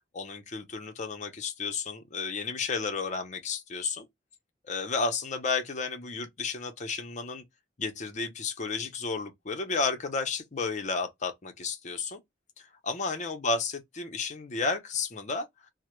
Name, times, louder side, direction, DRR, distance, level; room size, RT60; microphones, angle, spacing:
voice 1, 0.1-4.1 4.6-7.4 7.8-12.2 12.6-15.5, left 4 dB, 40° left, 0.6 m, -32 dB
2.1 x 2.0 x 2.9 m
head